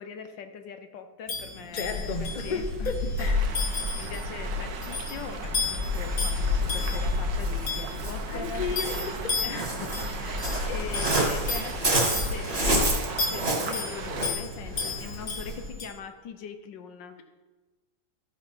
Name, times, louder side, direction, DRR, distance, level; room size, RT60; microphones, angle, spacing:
voice 1, 0.0-2.9 3.2-3.5 3.9-8.6 9.4-13.0 13.2-17.2, left 6 dB, 75° left, 8 dB, 1.6 m, -41 dB
sound 1, 1.3-15.9, left 4 dB, 55° left, 2.1 m, -35 dB
voice 2, 1.7-3.4 8.3-9.7, left 4 dB, 35° left, 6 dB, 0.7 m, -33 dB
Waves surf, 1.8-15.7, left 1 dB, 35° right, 2.3 m, -29 dB
sound 2, 3.2-14.3, right 5 dB, 70° right, 1.5 m, -40 dB
14.0 x 5.6 x 5.9 m, 1.3 s
omnidirectional pair, 2.0 m